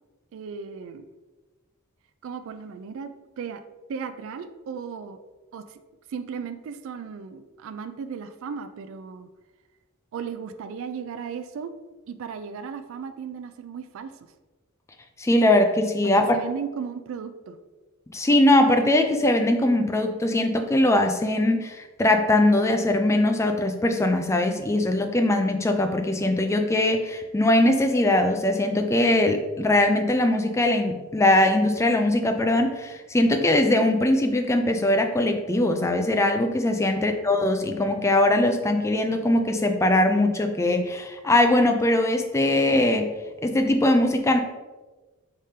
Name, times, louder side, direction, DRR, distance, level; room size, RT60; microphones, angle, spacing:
voice 1, 0.3-1.1 2.2-3.6 3.9-5.2 5.5-5.8 6.1-9.3 10.1-11.7 12.1-14.1 16.2-17.6 36.9-37.1, right 6 dB, 65° right, 10 dB, 0.3 m, -36 dB
voice 2, 15.2-16.2 18.1-43.1 43.4-44.4, left 1 dB, 15° left, 6 dB, 0.3 m, -21 dB
4.9 x 3.6 x 2.8 m, 1.2 s
head